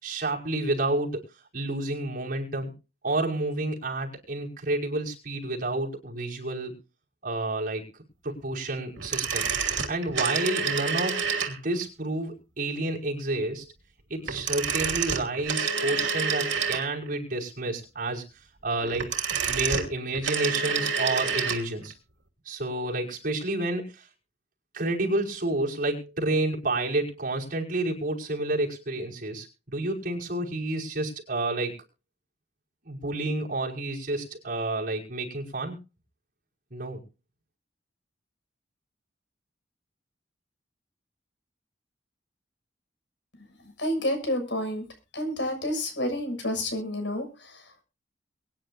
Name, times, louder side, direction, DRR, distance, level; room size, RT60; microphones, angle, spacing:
voice 1, 0.0-1.2 1.5-2.7 3.0-6.7 7.2-7.9 8.2-9.5 9.9-11.2 11.5-13.7 14.1-18.2 18.6-19.1 19.4-21.9 22.5-24.0 24.7-31.7 32.9-35.8 36.7-37.0, right 2 dB, 50° right, -2 dB, 5.5 m, -30 dB
sound 1, 9.0-11.8 14.2-17.1 18.8-21.7 21.9-22.0, right 6 dB, 85° right, 2.7 m, -28 dB
voice 2, 43.6-44.9 45.1-47.8, left 1 dB, 75° left, 5 dB, 6.9 m, -30 dB
23.5 x 10.5 x 2.6 m, 0.30 s
head